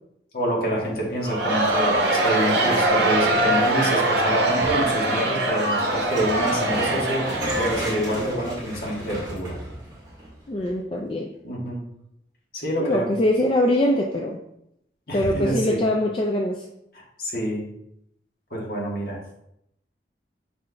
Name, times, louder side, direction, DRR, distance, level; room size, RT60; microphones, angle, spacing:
voice 1, 0.3-7.2 7.6-9.6 11.4-11.8 12.5-13.1 15.1-15.8 16.9-17.6 18.5-19.4, equal, 55° left, -3 dB, 1.3 m, -27 dB
Crowd, 1.2-8.5, right 2 dB, 70° right, 0.7 m, -23 dB
sound 1, 5.8-11.0, right 1 dB, 25° right, 1.6 m, -35 dB
voice 2, 10.5-11.3 12.8-14.4 15.1-16.6, left 1 dB, 30° left, 0 dB, 0.3 m, -23 dB
5.0 x 3.8 x 2.2 m, 0.78 s
head